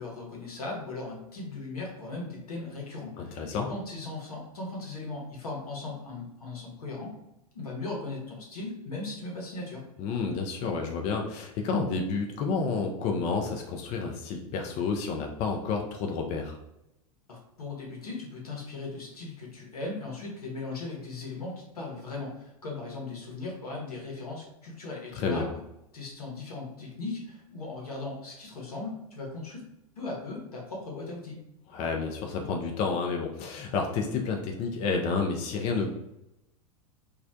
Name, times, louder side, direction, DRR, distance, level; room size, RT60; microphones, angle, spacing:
voice 1, 0.0-7.2 7.5-9.8 17.3-25.6 25.9-29.6 30.0-31.4, left 3 dB, 85° left, -1 dB, 0.9 m, -38 dB
voice 2, 3.2-3.7 10.0-16.6 25.2-25.5 31.7-36.0, left 4 dB, 40° left, 2 dB, 0.4 m, -30 dB
2.4 x 2.0 x 2.6 m, 0.85 s
hypercardioid pair, 90°, 19 cm